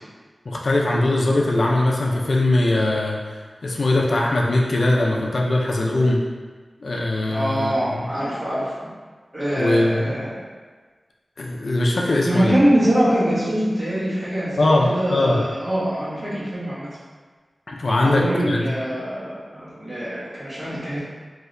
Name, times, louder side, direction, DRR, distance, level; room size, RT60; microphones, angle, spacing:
voice 1, 0.5-6.2 6.8-8.0 9.5-10.1 11.4-12.6 14.6-15.4 17.7-18.7, left 2 dB, 65° left, -2 dB, 0.4 m, -21 dB
voice 2, 7.3-8.8 9.3-10.4 12.2-16.9 18.0-21.0, equal, 35° right, -9 dB, 1.1 m, -23 dB
3.2 x 2.7 x 2.5 m, 1.4 s
wide cardioid pair, 90°, 0 cm